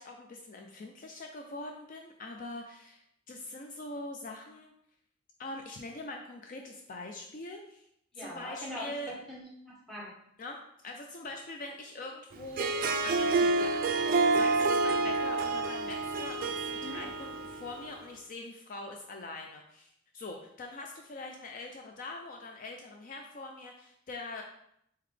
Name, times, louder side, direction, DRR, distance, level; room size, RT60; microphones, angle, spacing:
voice 1, 0.0-4.8 5.4-7.8 8.2-9.1 10.4-10.6 10.8-12.7 13.0-24.4, left 2 dB, 45° left, 3 dB, 0.4 m, -43 dB
voice 2, 8.1-10.1 16.8-17.1, equal, ahead, -5 dB, 1.1 m, -42 dB
Harp, 12.4-17.9, right 3 dB, 45° right, 0.3 m, -28 dB
4.3 x 3.9 x 3.2 m, 0.73 s
head